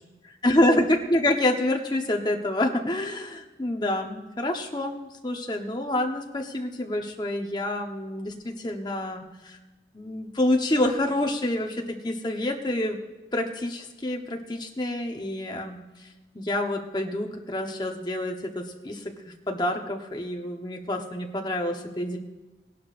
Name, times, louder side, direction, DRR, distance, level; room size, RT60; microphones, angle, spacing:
voice 1, 0.4-9.6 9.9-13.0 13.3-15.8 16.3-22.2, left 1 dB, 25° left, 2 dB, 1.0 m, -27 dB
17.5 x 11.5 x 2.5 m, 1.1 s
head